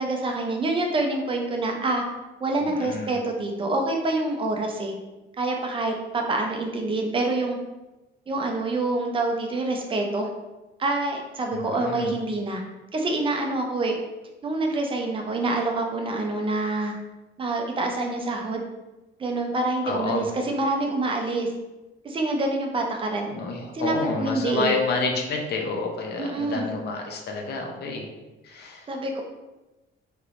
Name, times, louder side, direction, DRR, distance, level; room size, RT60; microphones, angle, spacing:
voice 1, 0.0-2.0 2.4-4.9 5.4-7.6 8.3-10.3 10.8-12.6 12.9-14.0 14.4-16.9 17.4-18.6 19.2-21.5 22.0-23.3 23.7-24.8 26.2-26.7 28.9-29.2, right 2 dB, 25° right, 2 dB, 0.4 m, -26 dB
voice 2, 2.6-3.2 11.5-12.1 19.8-20.3 23.3-28.1 28.4-28.9, left 3 dB, 55° left, 1 dB, 0.6 m, -29 dB
3.3 x 2.9 x 2.5 m, 1.1 s
cardioid pair, 160°, 20 cm